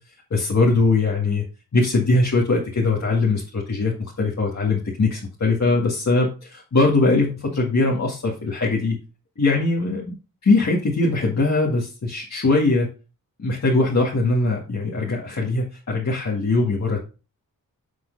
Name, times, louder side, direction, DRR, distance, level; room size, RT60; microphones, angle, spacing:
voice 1, 0.3-1.4 1.7-9.0 9.4-10.2 10.4-12.9 13.4-17.0, left 3 dB, 50° left, -4 dB, 2.0 m, -21 dB
7.6 x 6.3 x 4.0 m, 0.32 s
wide cardioid pair, 155°, 35 cm